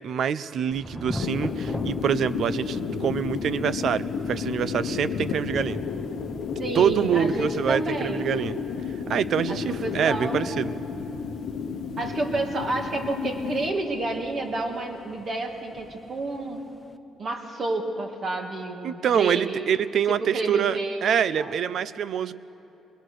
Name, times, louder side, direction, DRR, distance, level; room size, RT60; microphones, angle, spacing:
voice 1, 0.0-5.8 6.7-8.6 9.1-10.7 18.8-22.4, right 8 dB, 65° right, 16 dB, 0.6 m, -25 dB
Thunder / Rain, 0.7-17.0, left 1 dB, 10° left, 0.9 m, -41 dB
sound 1, 1.2-13.7, left 6 dB, 90° left, 1.0 m, -32 dB
voice 2, 6.6-8.3 9.5-10.4 12.0-16.6 17.2-19.7 20.1-21.1 21.4-21.5, right 2 dB, 50° right, 3 dB, 2.5 m, -30 dB
22.0 x 20.5 x 6.5 m, 2.9 s
cardioid pair, 90°, 0 cm